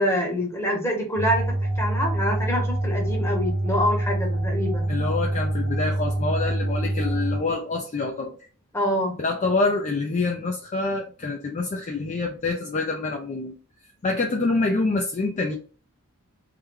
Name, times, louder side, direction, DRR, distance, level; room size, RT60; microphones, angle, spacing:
voice 1, 0.0-4.9 8.7-9.1, equal, 10° left, 0 dB, 0.9 m, -26 dB
sound 1, 1.2-7.4, right 1 dB, 55° right, 0.6 m, -25 dB
voice 2, 4.9-8.4 9.2-13.5 13.8-15.6, left 3 dB, 35° left, 2 dB, 0.4 m, -26 dB
3.3 x 2.1 x 3.4 m, 0.39 s
head